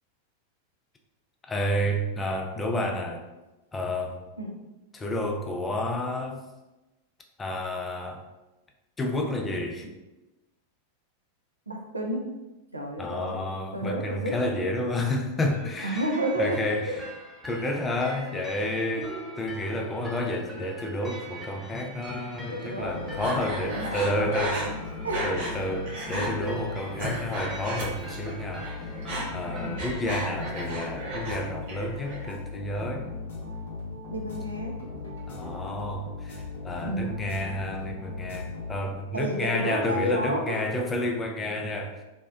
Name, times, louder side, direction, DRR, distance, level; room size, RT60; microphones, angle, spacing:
voice 1, 1.5-3.3 3.7-4.2 4.9-6.5 7.4-8.3 9.0-9.9 13.0-16.1 16.4-16.9 17.4-19.1 19.4-24.6 25.2-28.9 29.3-33.1 35.3-42.0, left 1 dB, 15° left, 2 dB, 0.3 m, -30 dB
voice 2, 11.7-12.3 12.7-13.4 13.7-14.3 15.8-16.6 16.9-17.0 19.0-19.3 22.5-23.4 23.7-24.3 24.6-24.8 25.0-25.5 29.6-29.8 34.1-34.7 36.8-37.2 39.1-40.8, right 1 dB, 80° right, 1 dB, 0.4 m, -31 dB
sound 1, 15.5-29.9, right 1 dB, 10° right, 0.7 m, -44 dB
sound 2, 22.8-39.2, left 3 dB, 65° left, 0.7 m, -38 dB
Breathing, 23.2-25.6 25.9-26.3 26.8-28.3 28.6-31.4 31.7-32.3, right 2 dB, 50° right, 0.7 m, -34 dB
2.7 x 2.0 x 2.3 m, 1.0 s
figure-of-eight pair, 90°, 0 cm